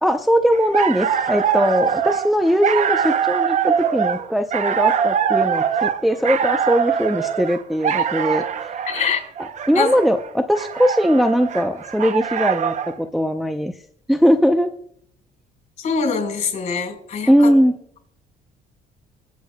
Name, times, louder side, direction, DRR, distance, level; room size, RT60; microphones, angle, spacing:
voice 1, 0.0-8.8 9.4-13.7 14.1-14.7 17.3-17.7, equal, ahead, 6 dB, 0.6 m, -20 dB
sound 1, 0.5-13.0, right 8 dB, 45° right, 0.7 m, -23 dB
voice 2, 8.9-9.2 9.7-9.9 15.8-17.3, left 5 dB, 45° left, 5 dB, 4.3 m, -23 dB
25.5 x 8.5 x 2.2 m, 0.68 s
cardioid pair, 110°, 17 cm